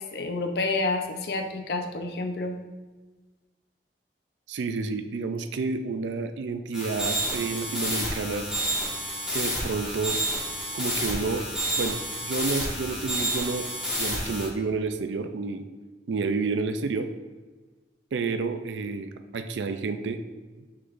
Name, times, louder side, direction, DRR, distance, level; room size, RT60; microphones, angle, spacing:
voice 1, 0.0-2.6, left 3 dB, 60° left, 5 dB, 0.6 m, -29 dB
voice 2, 4.5-8.5 9.3-10.2 10.7-11.5 11.7-13.7 14.0-15.7 16.1-17.1 18.1-20.2, right 4 dB, 85° right, 9 dB, 0.4 m, -30 dB
sound 1, 6.7-14.5, equal, 5° right, 1.6 m, -30 dB
6.2 x 5.9 x 2.5 m, 1.3 s
head